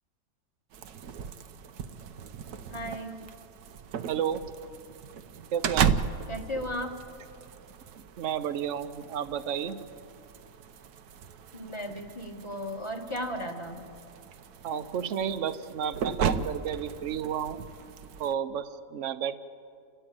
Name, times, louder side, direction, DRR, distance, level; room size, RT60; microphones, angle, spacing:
sound 1, 0.7-18.3, right 7 dB, 90° right, 1.4 m, -36 dB
voice 1, 2.7-3.3 6.3-7.0 11.5-13.8, equal, 20° left, 2 dB, 2.0 m, -35 dB
voice 2, 4.1-4.4 5.5-5.9 8.2-9.8 14.6-17.6 18.2-19.4, right 8 dB, 60° right, 12 dB, 1.1 m, -31 dB
30.0 x 13.5 x 9.0 m, 2.4 s
omnidirectional pair, 1.6 m